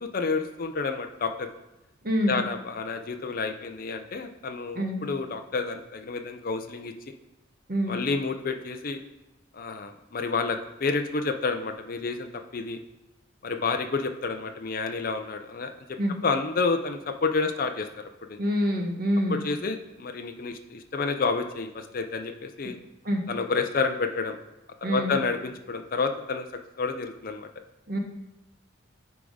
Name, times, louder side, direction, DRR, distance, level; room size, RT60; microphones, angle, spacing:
voice 1, 0.0-1.5 2.3-6.9 7.9-9.0 9.5-12.8 13.4-15.7 16.2-17.9 18.3-18.4 19.3-22.8 23.3-24.4 24.9-26.5 26.8-27.5, left 4 dB, 45° left, 6 dB, 0.5 m, -29 dB
voice 2, 2.0-2.4 4.7-5.0 7.7-7.9 16.0-16.1 18.4-19.5 23.0-23.2 24.8-25.1 27.9-28.0, equal, 45° right, 2 dB, 1.1 m, -26 dB
9.1 x 3.5 x 4.9 m, 1.0 s
head